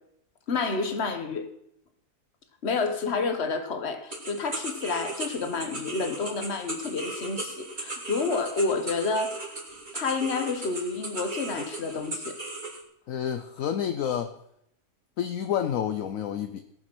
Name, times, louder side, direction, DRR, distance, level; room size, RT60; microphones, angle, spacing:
voice 1, 0.5-1.5 2.6-9.4 9.9-12.4, left 4 dB, 45° left, 8 dB, 1.5 m, -29 dB
sound 1, 4.1-12.8, right 2 dB, 30° right, 2.4 m, -37 dB
voice 2, 13.1-14.3 15.2-16.6, left 9 dB, 65° left, 8 dB, 1.1 m, -29 dB
17.5 x 7.1 x 6.2 m, 0.75 s
omnidirectional pair, 1.6 m